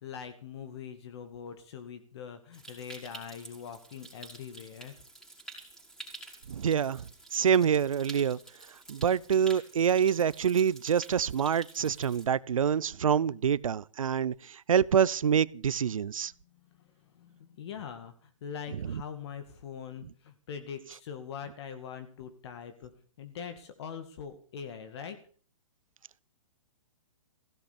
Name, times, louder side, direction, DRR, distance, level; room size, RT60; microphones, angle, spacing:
voice 1, 0.0-4.9 16.8-16.9 17.1-22.9 23.2-25.2, left 7 dB, 55° left, 2.3 m, -42 dB
Stream, 2.5-12.3, right 2 dB, 5° left, 5.0 m, -49 dB
voice 2, 6.5-7.0 7.3-8.4 8.9-14.3 14.7-16.3, right 8 dB, 85° right, 0.7 m, -26 dB
16.0 x 12.0 x 7.0 m
hypercardioid pair, 145°, 17 cm